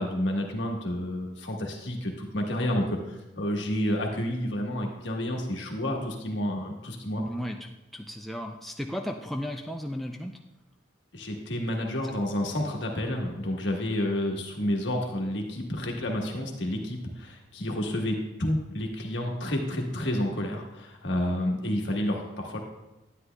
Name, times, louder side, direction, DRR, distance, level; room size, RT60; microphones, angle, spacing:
voice 1, 0.0-7.2 11.1-22.6, left 1 dB, 70° left, 1 dB, 1.3 m, -30 dB
voice 2, 7.2-10.4, equal, ahead, 2 dB, 0.3 m, -35 dB
10.0 x 9.5 x 2.2 m, 0.99 s
head